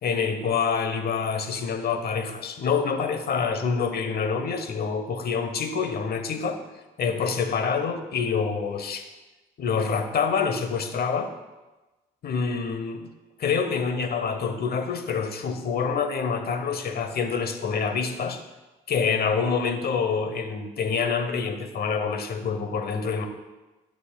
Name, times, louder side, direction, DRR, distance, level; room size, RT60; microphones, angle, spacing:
voice 1, 0.0-6.6 7.0-9.1 9.6-11.3 12.2-13.1 13.4-18.4 18.9-23.3, left 5 dB, 60° left, 8 dB, 0.9 m, -26 dB
11.5 x 7.2 x 2.3 m, 1.1 s
supercardioid pair, 60°, 18 cm